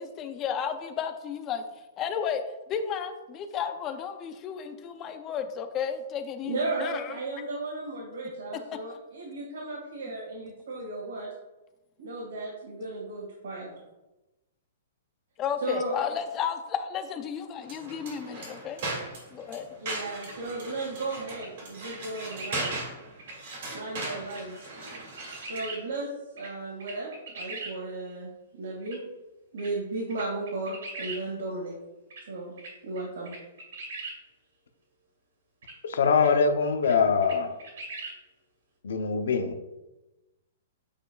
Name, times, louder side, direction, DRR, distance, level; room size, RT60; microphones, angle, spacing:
voice 1, 0.0-1.6 2.0-2.4 2.7-7.2 8.9-9.0 15.4-18.8 19.3-19.7, left 7 dB, 15° left, 8 dB, 0.4 m, -33 dB
voice 2, 6.4-11.3 12.0-13.7 15.6-15.9 19.8-22.8 23.7-24.5 25.4-26.1 26.3-27.1 27.3-28.3 28.6-29.0 29.5-31.8 32.3-32.5 32.8-33.3, right 2 dB, 80° right, -4 dB, 1.9 m, -35 dB
sound 1, 17.6-25.7, right 2 dB, 40° right, 1.9 m, -38 dB
sound 2, 20.0-20.3 21.4-21.5 21.8-22.8 23.2-23.4 24.3-24.4 24.9-25.8 26.4-26.5 26.8-27.7 28.9-29.0 29.6-29.7 30.1-31.2 32.1-32.2 32.6-33.0 33.3-34.2 35.6-35.7 36.2-36.3 36.8-36.9 37.2-38.1, right 3 dB, 65° right, 2.3 m, -40 dB
voice 3, 35.9-37.5 38.8-39.6, left 5 dB, 70° left, 7 dB, 0.7 m, -23 dB
8.2 x 5.5 x 2.3 m, 1.0 s
hypercardioid pair, 180°, 0 cm